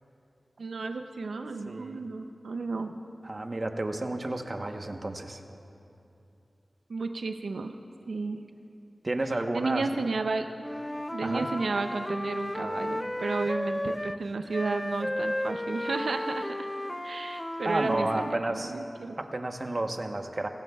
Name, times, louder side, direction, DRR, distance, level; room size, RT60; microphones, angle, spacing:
voice 1, 0.6-2.9 6.9-7.7 8.1-8.4 9.5-10.5 11.1-16.7 17.0-19.2, right 3 dB, 85° right, 6 dB, 0.6 m, -32 dB
voice 2, 1.7-2.0 3.2-5.4 9.0-9.9 11.2-11.5 17.6-18.7 19.2-20.5, right 2 dB, 45° right, 5 dB, 1.0 m, -31 dB
Wind instrument woodwind instrument, 10.6-14.2 14.5-18.4, left 1 dB, 15° left, 0.4 m, -34 dB
26.5 x 18.5 x 2.3 m, 2.7 s
wide cardioid pair, 55°, 0 cm